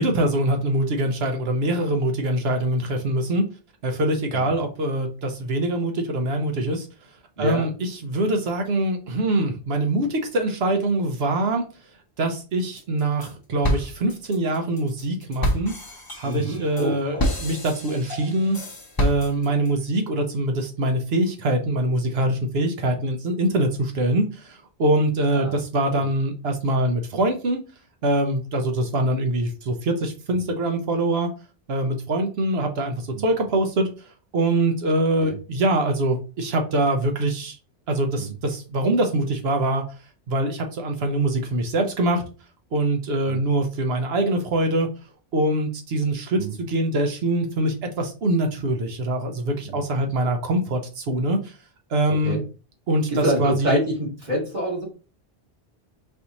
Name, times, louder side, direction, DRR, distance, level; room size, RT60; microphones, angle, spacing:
voice 1, 0.0-3.5 3.8-6.9 7.4-11.6 12.2-15.7 16.2-18.6 19.0-27.6 28.0-31.3 31.7-33.9 34.3-37.6 37.9-39.8 40.3-42.2 42.7-44.9 45.3-51.5 51.9-52.4 52.9-53.8, right 1 dB, 75° right, 4 dB, 1.0 m, -23 dB
voice 2, 7.4-7.7 16.2-17.3 25.3-25.6 25.9-26.0 33.1-33.2 35.2-35.4 38.2-38.3 43.2-43.4 46.4-46.5 49.6-49.8 52.1-52.4 53.1-54.8, equal, 45° right, -4 dB, 2.1 m, -27 dB
sound 1, 12.8-13.3 13.6-19.7, equal, 25° left, 0.7 m, -28 dB
5.4 x 2.6 x 2.9 m, 0.34 s
omnidirectional pair, 1.0 m